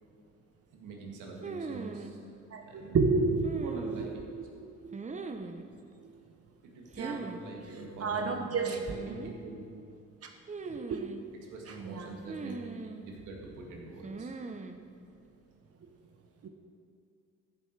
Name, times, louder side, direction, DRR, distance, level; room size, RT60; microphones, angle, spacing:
voice 1, 0.7-2.2 2.6-4.2 6.6-9.6 11.4-14.3, right 3 dB, 85° right, -1 dB, 2.1 m, -45 dB
sound 1, 1.4-2.1 3.4-4.3 4.9-5.6 6.9-7.4 7.7-7.8 8.6-9.3 10.5-11.2 12.3-13.0 14.0-14.8, right 4 dB, 25° right, 0.7 m, -40 dB
voice 2, 2.5-4.0 4.3-4.4 4.8-5.0 7.0-7.2 8.0-8.8 10.6-11.1 11.8-12.1 16.4-16.5, right 4 dB, 50° right, 4 dB, 1.0 m, -30 dB
14.0 x 7.3 x 4.6 m, 2.5 s
cardioid pair, 90°, 30 cm